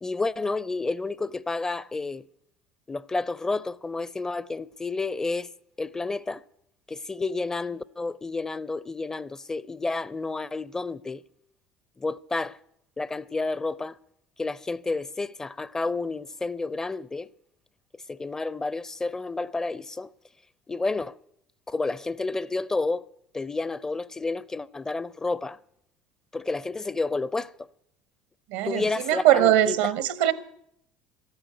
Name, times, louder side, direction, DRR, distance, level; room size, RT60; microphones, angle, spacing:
voice 1, 0.0-2.2 2.9-5.5 5.8-6.4 6.9-11.2 12.0-12.6 13.0-14.0 14.4-17.3 18.1-20.1 20.7-21.2 21.7-23.0 23.3-25.6 26.3-27.5 28.6-29.8, left 3 dB, 15° left, 0.5 m, -30 dB
voice 2, 28.5-30.3, right 12 dB, 85° right, 0.9 m, -21 dB
13.5 x 9.0 x 9.3 m
supercardioid pair, 90°, 3 cm